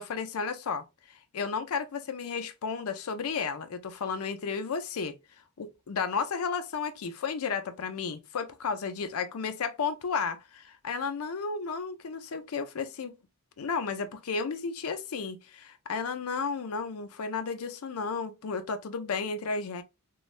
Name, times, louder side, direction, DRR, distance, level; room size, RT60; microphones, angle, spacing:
voice 1, 0.0-5.1 5.6-13.1 13.6-19.8, left 5 dB, 90° left, 0.5 m, -33 dB
3.1 x 2.2 x 2.4 m
head